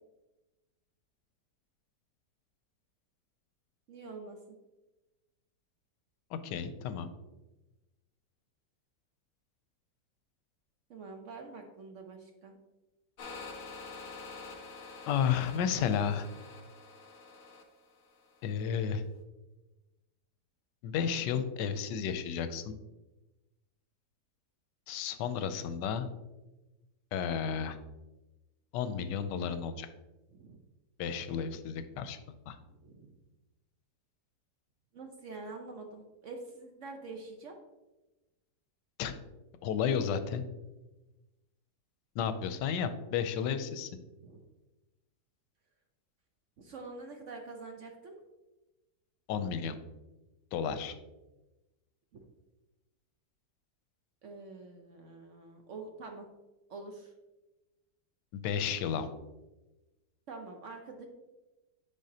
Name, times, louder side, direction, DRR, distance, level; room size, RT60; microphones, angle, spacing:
voice 1, 3.9-4.4 10.9-12.5 30.3-30.6 32.6-33.2 34.9-37.6 44.2-44.4 46.6-48.2 54.2-56.3 56.7-57.1 60.3-61.1, right 3 dB, 60° right, 3 dB, 0.8 m, -46 dB
voice 2, 6.3-7.1 15.1-16.3 18.4-19.0 20.8-22.8 24.9-26.1 27.1-27.8 28.7-29.9 31.0-32.2 32.5-32.6 39.0-39.1 39.6-40.4 42.1-43.9 49.3-49.8 50.5-51.0 58.3-59.1, left 7 dB, 90° left, 10 dB, 1.2 m, -32 dB
sound 1, 13.2-18.6, left 4 dB, 60° left, 0.6 m, -47 dB
9.8 x 3.9 x 2.8 m, 1.1 s
omnidirectional pair, 1.8 m